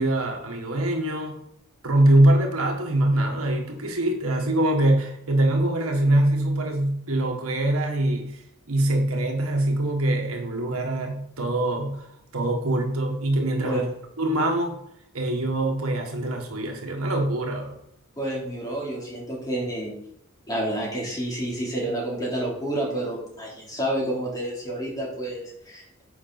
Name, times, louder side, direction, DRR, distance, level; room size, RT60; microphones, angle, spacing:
voice 1, 0.0-1.4 1.8-8.4 8.7-12.0 12.3-13.8 14.2-14.8 15.1-17.8, right 1 dB, 75° right, 2 dB, 1.6 m, -23 dB
voice 2, 18.2-20.0 20.5-25.8, right 1 dB, 20° left, -4 dB, 3.4 m, -29 dB
9.2 x 5.8 x 4.2 m, 0.76 s
head